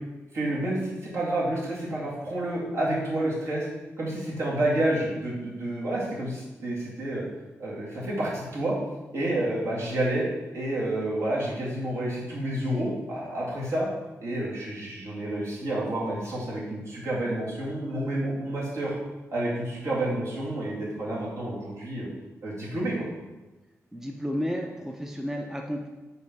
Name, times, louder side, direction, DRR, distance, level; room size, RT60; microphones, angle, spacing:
voice 1, 0.3-3.7 4.0-7.2 7.6-8.8 9.1-10.2 10.5-13.9 14.2-18.9 19.3-22.1 22.4-23.1, right 1 dB, 65° right, -5 dB, 2.2 m, -29 dB
voice 2, 23.9-25.9, equal, 5° right, 2 dB, 0.5 m, -32 dB
5.3 x 4.4 x 5.3 m, 1.1 s
wide cardioid pair, 150°, 5 cm